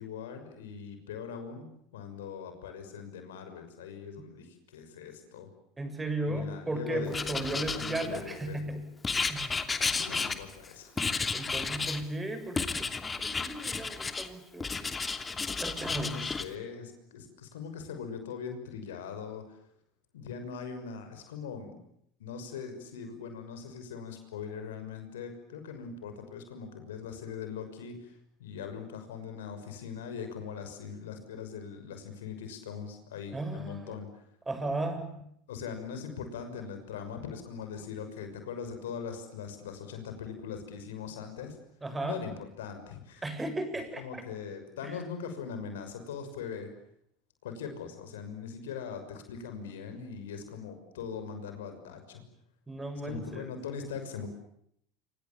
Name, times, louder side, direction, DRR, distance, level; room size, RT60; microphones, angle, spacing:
voice 1, 0.0-5.5 6.2-8.6 9.8-11.0 15.8-19.6 20.1-21.8 22.2-34.2 35.5-41.6 42.0-43.2 44.0-46.7 47.4-52.2 53.0-54.3, left 6 dB, 75° left, 7 dB, 6.2 m, -41 dB
voice 2, 5.8-8.9 9.3-9.8 11.3-14.7 15.6-16.2 33.3-34.0 34.5-35.2 41.8-42.2 43.2-44.2 44.8-45.0 52.7-53.5, right 2 dB, 15° right, 9 dB, 7.5 m, -36 dB
Writing, 7.1-8.4 9.0-10.7 11.0-12.0 12.6-14.3 14.6-16.5, left 4 dB, 20° left, 2.8 m, -32 dB
28.0 x 27.5 x 7.2 m, 0.72 s
hypercardioid pair, 80°, 0 cm